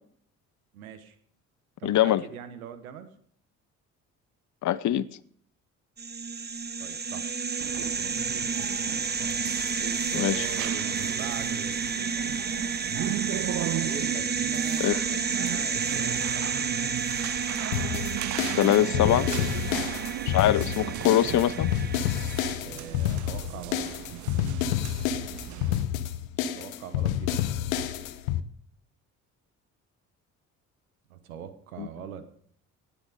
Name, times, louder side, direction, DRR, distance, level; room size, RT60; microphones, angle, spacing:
voice 1, 0.7-1.1 1.8-3.1 6.8-7.4 7.7-8.1 9.8-12.4 13.8-16.6 19.5-19.9 22.6-24.1 26.5-27.3 31.1-32.3, right 9 dB, 80° right, 1.2 m, -42 dB
voice 2, 1.8-2.2 4.6-5.1 10.1-10.4 14.8-15.0 18.5-19.3 20.3-21.7 31.8-31.9, left 12 dB, 45° left, 0.8 m, -23 dB
sound 1, 6.0-22.6, right 5 dB, 25° right, 1.1 m, -31 dB
sound 2, 7.6-25.8, right 17 dB, 45° right, 0.5 m, -37 dB
sound 3, 17.7-28.4, left 11 dB, 75° left, 1.0 m, -29 dB
18.0 x 10.0 x 5.0 m
hypercardioid pair, 45°, 41 cm